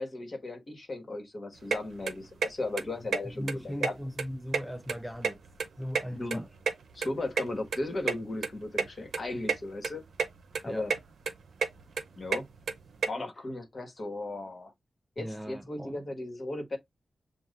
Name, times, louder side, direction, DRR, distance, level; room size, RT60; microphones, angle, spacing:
voice 1, 0.0-3.9 6.1-6.4 6.9-10.0 10.6-10.9 12.2-12.5 13.1-14.7 15.2-16.8, left 2 dB, 40° left, 1.4 m, -36 dB
sound 1, 1.7-1.8 2.1-2.5 2.8-2.9 3.1-3.2 3.5-4.2 4.5-5.7 5.9-7.4 7.7-7.8 8.1-8.2 8.4-8.5 8.8-8.9 9.1-9.6 9.8-10.3 10.5-11.0 11.3-13.1, right 5 dB, 85° right, 0.6 m, -29 dB
voice 2, 3.4-5.4 5.8-6.5 10.7-10.9 15.2-15.9, equal, 5° right, 0.5 m, -38 dB
7.1 x 2.4 x 2.5 m
wide cardioid pair, 110°, 0 cm